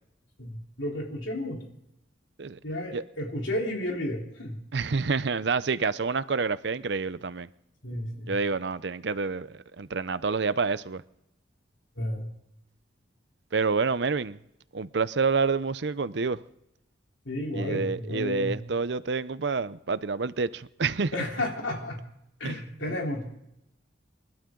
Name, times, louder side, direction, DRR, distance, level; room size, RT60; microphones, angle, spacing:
voice 1, 0.4-1.6 2.6-4.6 7.8-8.3 12.0-12.3 17.2-18.6 21.1-22.0 22.4-23.2, left 1 dB, 85° left, 3.7 m, -32 dB
voice 2, 4.7-7.5 8.3-11.0 13.5-14.4 14.7-16.4 17.5-21.1 22.4-22.6, right 4 dB, 65° right, 0.6 m, -28 dB
29.0 x 12.5 x 3.9 m
head